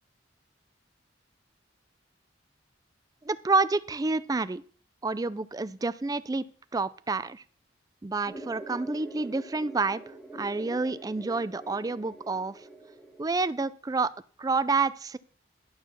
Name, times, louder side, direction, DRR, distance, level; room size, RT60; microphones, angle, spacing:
voice 1, 3.2-4.6 5.0-6.5 6.7-7.4 8.0-10.0 10.3-12.6 13.2-14.1 14.4-15.2, right 3 dB, 20° right, 16 dB, 0.4 m, -28 dB
sound 1, 8.3-13.3, right 2 dB, 5° left, 1.8 m, -45 dB
11.0 x 4.6 x 7.1 m, 0.43 s
head